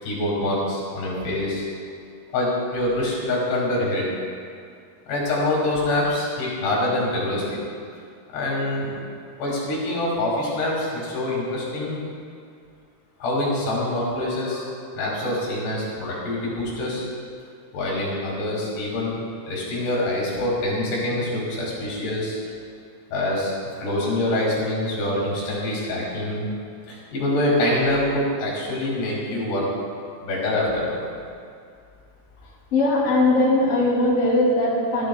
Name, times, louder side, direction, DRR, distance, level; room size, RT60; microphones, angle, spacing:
voice 1, 0.0-1.7 2.3-4.1 5.1-7.6 8.3-8.9 9.4-12.0 13.2-14.6 14.9-17.0 17.7-19.2 19.5-22.4 23.1-23.5 23.8-26.5 26.9-29.7 30.2-31.0, left 1 dB, 75° left, -5 dB, 4.3 m, -25 dB
voice 2, 32.4-35.1, left 2 dB, 40° left, -7 dB, 3.4 m, -20 dB
17.0 x 12.0 x 2.3 m, 2.3 s
omnidirectional pair, 4.8 m